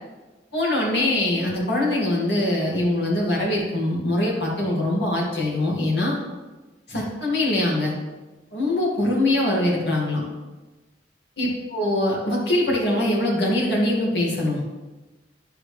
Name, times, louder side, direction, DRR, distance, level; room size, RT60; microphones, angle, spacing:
voice 1, 0.5-6.2 6.9-7.9 8.5-10.2 11.4-14.6, left 1 dB, 65° left, -3 dB, 2.2 m, -23 dB
11.5 x 4.7 x 3.4 m, 1.2 s
head